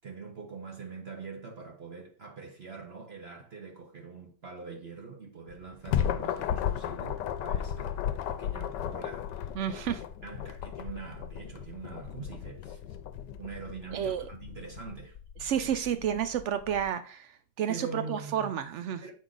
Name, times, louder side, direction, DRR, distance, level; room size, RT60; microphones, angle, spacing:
voice 1, 0.0-8.0 8.3-9.5 10.2-12.8 13.4-15.5 17.7-18.5 19.0-19.1, right 4 dB, 45° right, 1.0 m, -44 dB
sound 1, 5.5-15.0, left 10 dB, 90° left, 1.2 m, -34 dB
sound 2, 8.7-16.9, left 7 dB, 60° left, 0.8 m, -50 dB
voice 2, 9.5-10.0 13.9-14.3 15.4-19.0, right 9 dB, 85° right, 0.6 m, -31 dB
7.5 x 4.8 x 3.9 m
omnidirectional pair, 1.8 m